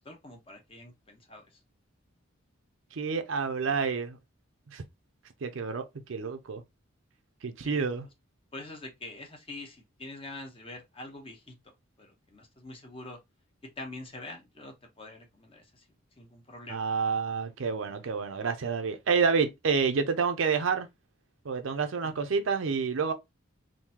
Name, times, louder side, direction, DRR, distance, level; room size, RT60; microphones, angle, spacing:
voice 1, 0.0-1.6 7.6-7.9 8.5-11.5 12.0-13.2 13.8-15.8 16.2-16.9 22.0-22.2, left 2 dB, 25° left, 0.9 m, -45 dB
voice 2, 2.9-4.2 4.7-4.8 5.4-6.6 7.4-8.1 16.7-20.9 21.4-23.1, right 5 dB, 65° right, 0.5 m, -29 dB
3.7 x 2.6 x 2.8 m
head